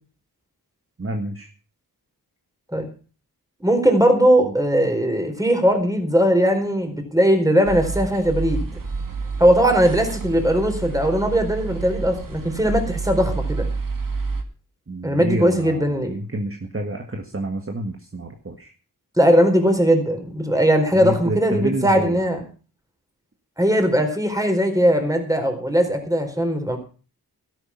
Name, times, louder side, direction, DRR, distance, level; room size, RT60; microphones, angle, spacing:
voice 1, 1.0-1.5 4.4-4.5 14.9-18.7 20.9-22.2, right 1 dB, 35° right, 3 dB, 1.7 m, -28 dB
voice 2, 3.6-8.7 9.4-13.7 15.0-16.1 19.2-22.4 23.6-26.8, equal, 10° right, 5 dB, 4.3 m, -19 dB
sound 1, 7.6-14.4, right 4 dB, 60° right, 2.2 m, -29 dB
13.0 x 11.5 x 5.8 m, 0.37 s
wide cardioid pair, 65°, 38 cm